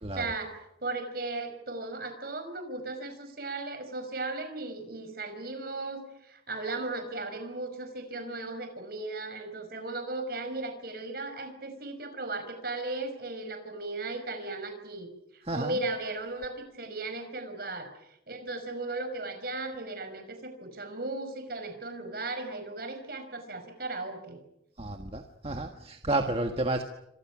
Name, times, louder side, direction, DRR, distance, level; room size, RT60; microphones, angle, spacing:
voice 1, 0.2-15.1 15.3-17.9 18.3-24.4, right 2 dB, 55° right, 8 dB, 5.3 m, -36 dB
voice 2, 15.5-15.8 24.8-26.8, right 2 dB, 30° right, 5 dB, 1.5 m, -31 dB
28.0 x 26.0 x 6.2 m, 0.80 s
head